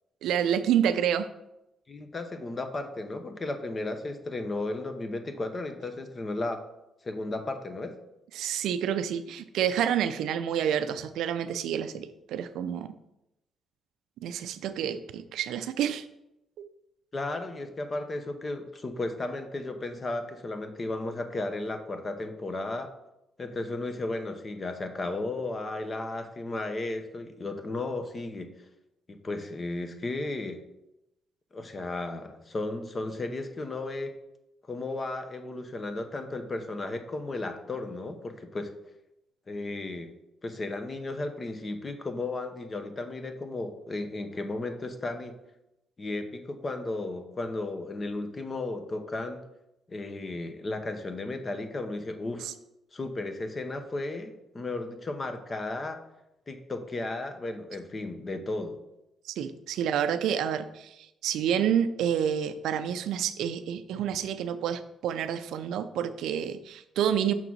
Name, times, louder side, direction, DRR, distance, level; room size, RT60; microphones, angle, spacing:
voice 1, 0.2-1.3 8.3-12.9 14.2-16.1 52.4-52.5 59.3-67.3, right 9 dB, 85° right, 11 dB, 0.4 m, -28 dB
voice 2, 1.9-6.6 7.0-8.0 17.1-22.9 23.4-28.5 29.1-30.6 31.5-34.1 34.7-38.7 39.5-40.1 40.4-45.4 46.0-49.4 49.9-52.5 52.9-56.0 56.5-58.8, left 2 dB, 25° left, 7 dB, 0.7 m, -34 dB
5.9 x 3.9 x 6.1 m, 0.89 s
cardioid pair, 135°, 0 cm